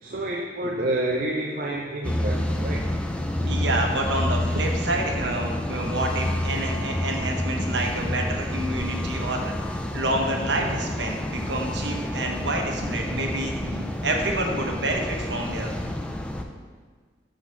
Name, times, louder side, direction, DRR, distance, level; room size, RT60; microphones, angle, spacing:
voice 1, 0.0-2.9, right 1 dB, 50° right, 0 dB, 0.5 m, -29 dB
sound 1, 2.0-16.4, left 1 dB, 5° left, 0.4 m, -29 dB
voice 2, 3.4-15.7, right 1 dB, 80° right, 1 dB, 1.0 m, -28 dB
6.2 x 3.8 x 5.8 m, 1.5 s
head